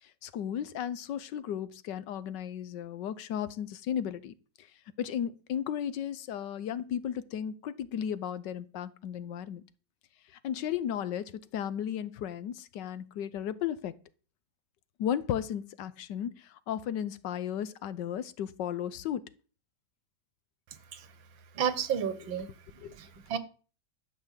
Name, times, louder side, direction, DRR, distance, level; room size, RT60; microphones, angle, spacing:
voice 1, 0.0-4.7 5.0-9.6 10.4-13.9 15.0-19.2 22.2-22.3 22.8-22.9, left 9 dB, 70° left, 1.3 m, -35 dB
voice 2, 21.6-22.5 23.0-23.4, right 8 dB, 90° right, 1.9 m, -31 dB
12.0 x 5.3 x 8.2 m
omnidirectional pair, 2.0 m